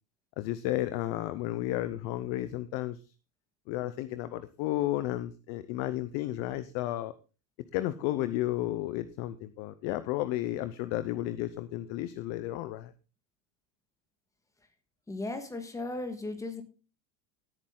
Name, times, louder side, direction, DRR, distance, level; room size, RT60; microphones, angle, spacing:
voice 1, 0.4-3.0 3.7-7.1 7.7-12.9, left 15 dB, 35° left, 13 dB, 0.6 m, -32 dB
voice 2, 15.1-16.6, left 2 dB, 5° left, 6 dB, 1.6 m, -36 dB
16.5 x 8.9 x 3.8 m, 0.34 s
supercardioid pair, 160°, 49 cm